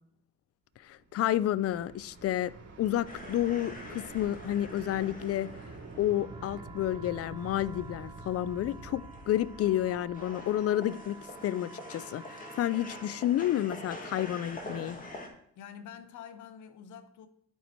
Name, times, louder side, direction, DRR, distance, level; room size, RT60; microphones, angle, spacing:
voice 1, 0.8-2.5 2.8-5.5 6.0-15.0, left 12 dB, 50° left, 0.4 m, -30 dB
sound 1, 1.0-11.0, right 3 dB, 55° right, 2.5 m, -47 dB
sound 2, 3.1-6.4 6.9-7.0 7.3-9.9 10.1-15.3, left 1 dB, 25° left, 1.8 m, -46 dB
sound 3, 6.1-13.3, right 5 dB, 15° right, 0.3 m, -51 dB
voice 2, 15.6-17.3, left 8 dB, 80° left, 0.8 m, -47 dB
11.0 x 4.6 x 4.4 m
cardioid pair, 90°, 30 cm